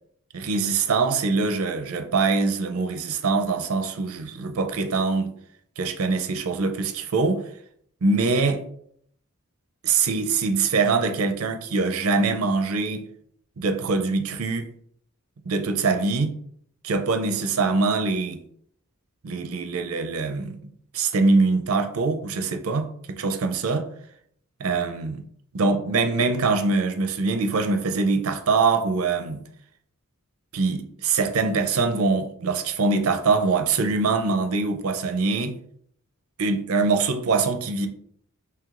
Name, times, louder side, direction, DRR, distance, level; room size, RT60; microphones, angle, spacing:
voice 1, 0.3-5.3 5.8-7.4 8.0-8.6 9.8-13.1 13.6-14.7 15.5-16.3 16.8-18.4 19.2-23.9 24.6-25.2 25.5-29.4 30.5-35.6 36.4-37.9, right 4 dB, 70° right, 0.5 m, -23 dB
4.7 x 3.2 x 2.4 m
head